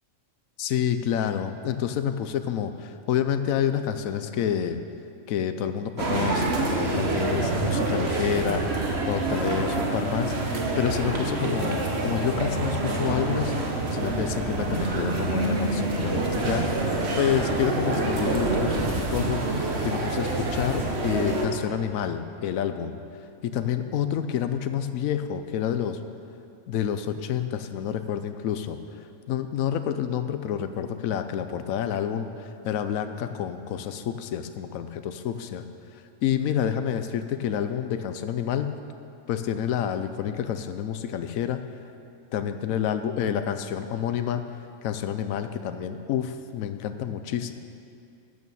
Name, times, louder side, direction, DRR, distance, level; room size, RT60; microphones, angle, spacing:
voice 1, 0.6-4.8 5.3-10.3 10.8-13.5 13.9-16.6 16.9-19.6 19.8-23.0 23.4-26.0 26.7-28.8 29.3-35.6 36.2-38.7 39.3-41.6 42.3-47.5, left 9 dB, 85° left, 9 dB, 1.1 m, -28 dB
sound 1, 6.0-21.5, right 2 dB, 55° right, 1.5 m, -26 dB
12.5 x 8.9 x 7.1 m, 2.5 s
omnidirectional pair, 1.4 m